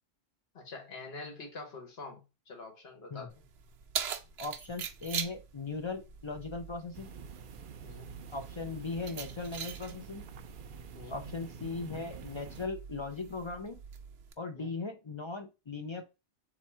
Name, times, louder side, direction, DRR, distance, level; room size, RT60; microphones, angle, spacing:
voice 1, 0.5-3.4 7.8-8.3 10.9-11.3 14.5-14.7, left 3 dB, 75° left, 1.4 m, -46 dB
Keys jangling, 3.3-14.3, right 7 dB, 90° right, 0.9 m, -43 dB
voice 2, 4.4-7.1 8.3-10.2 11.1-13.8 14.4-16.0, left 3 dB, 40° left, 0.4 m, -38 dB
sound 1, 6.9-12.7, right 6 dB, 65° right, 0.7 m, -48 dB
3.5 x 3.0 x 4.3 m
omnidirectional pair, 1.0 m